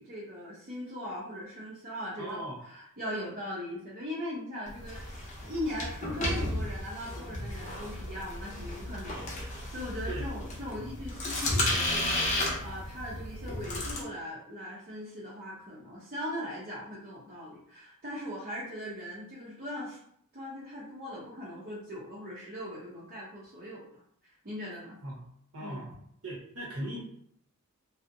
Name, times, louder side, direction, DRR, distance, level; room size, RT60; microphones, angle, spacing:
voice 1, 0.0-20.0 20.3-23.9 24.4-25.0 25.6-25.8, equal, 40° right, -7 dB, 0.6 m, -40 dB
voice 2, 2.2-2.6 10.1-10.3 25.0-25.3 25.5-25.9 26.2-27.0, right 1 dB, 90° right, -4 dB, 0.9 m, -38 dB
sound 1, 4.7-14.0, left 1 dB, 35° left, 0.5 m, -33 dB
2.5 x 2.0 x 2.5 m, 0.67 s
head